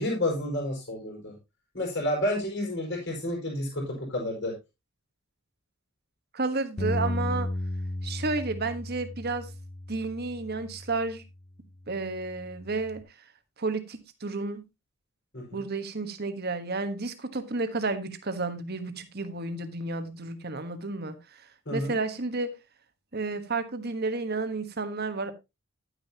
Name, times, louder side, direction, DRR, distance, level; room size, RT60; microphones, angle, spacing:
voice 1, 0.0-1.3 1.7-4.5 15.3-15.6 21.7-22.0, left 1 dB, 55° left, 5.3 m, -30 dB
voice 2, 6.3-7.5 8.0-9.5 9.9-11.2 11.9-13.0 13.6-14.6 15.5-21.4 21.7-22.6 23.1-25.3, right 3 dB, 45° right, 1.3 m, -31 dB
Bass guitar, 6.8-11.2 11.9-13.0, left 1 dB, 30° left, 0.6 m, -35 dB
11.0 x 9.1 x 2.9 m
head